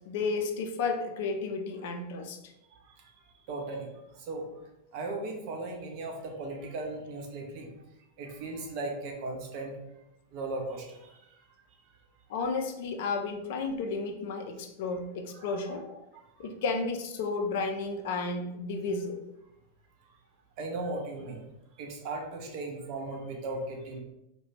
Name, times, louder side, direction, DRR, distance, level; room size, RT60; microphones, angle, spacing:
voice 1, 0.1-2.4 12.3-16.0 16.4-19.2, left 4 dB, 50° left, 5 dB, 0.3 m, -32 dB
voice 2, 3.5-3.9 4.2-4.5 4.9-7.7 8.2-9.8 10.3-11.2 15.3-15.6 16.4-16.5 20.6-21.4 21.8-24.0, right 2 dB, 45° right, 1 dB, 0.6 m, -37 dB
2.3 x 2.1 x 3.1 m, 0.87 s
figure-of-eight pair, 90°, 0 cm